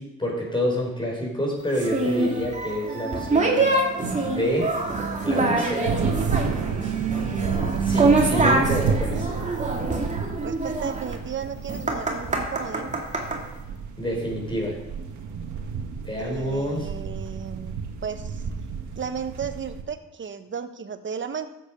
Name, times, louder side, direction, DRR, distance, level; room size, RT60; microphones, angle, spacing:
voice 1, 0.0-3.7 4.2-4.7 5.2-6.0 7.8-9.3 14.0-14.8 16.0-16.9, equal, 15° left, -1 dB, 5.1 m, -28 dB
sound 1, 1.7-13.4, right 3 dB, 25° right, 2.5 m, -25 dB
sound 2, 3.8-19.8, right 6 dB, 75° right, 1.6 m, -31 dB
voice 2, 8.5-9.0 10.4-12.9 16.2-18.4 18.9-21.5, right 6 dB, 40° right, 9 dB, 1.1 m, -34 dB
13.0 x 8.0 x 5.2 m, 0.93 s
cardioid pair, 90°, 30 cm